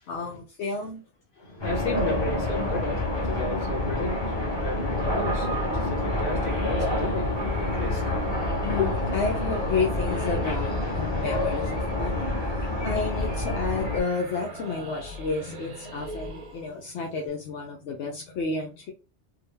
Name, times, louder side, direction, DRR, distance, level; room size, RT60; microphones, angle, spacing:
voice 1, 0.1-1.0 8.6-18.9, left 4 dB, 75° left, 0.9 m, -31 dB
voice 2, 1.4-8.9, left 2 dB, 50° left, 1.4 m, -33 dB
sound 1, 1.6-14.0, left 1 dB, 25° left, 1.0 m, -28 dB
sound 2, 6.3-16.9, equal, 40° right, 0.6 m, -40 dB
3.6 x 2.1 x 3.3 m
omnidirectional pair, 1.2 m